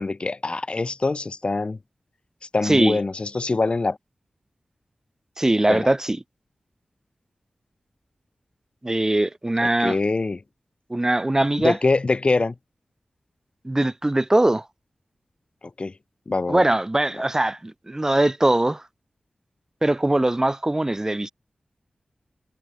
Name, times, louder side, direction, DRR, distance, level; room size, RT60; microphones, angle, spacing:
voice 1, 0.0-1.8 2.5-4.0 5.7-5.9 9.6-10.4 11.6-12.5 15.8-15.9 16.3-16.6, left 3 dB, 45° left, 4.7 m, -24 dB
voice 2, 2.6-3.0 5.4-6.2 8.8-10.0 10.9-11.8 13.6-14.6 16.5-18.8 19.8-21.3, right 1 dB, 20° right, 3.1 m, -21 dB
wide cardioid pair, 75°, 2 cm